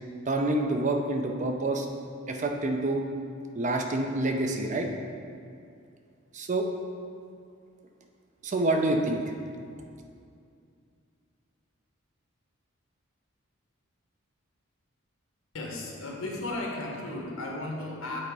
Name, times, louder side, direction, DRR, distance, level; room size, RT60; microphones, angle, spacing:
voice 1, 0.3-1.9 2.3-3.0 3.5-4.9 6.3-6.7 8.4-9.2, right 2 dB, 35° right, 3 dB, 0.5 m, -27 dB
voice 2, 15.5-18.2, left 2 dB, 85° left, -1 dB, 1.2 m, -35 dB
7.8 x 4.1 x 4.7 m, 2.3 s
head